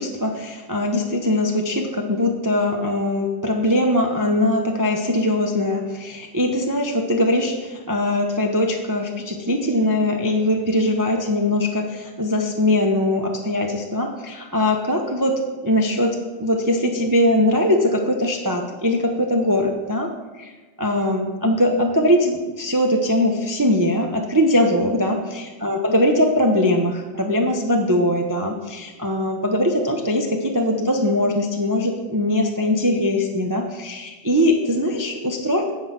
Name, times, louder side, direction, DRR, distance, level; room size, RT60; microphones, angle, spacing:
voice 1, 0.0-20.1 20.4-20.5 20.8-35.7, left 1 dB, 25° right, 2 dB, 0.4 m, -21 dB
9.6 x 7.8 x 5.8 m, 1.3 s
omnidirectional pair, 2.0 m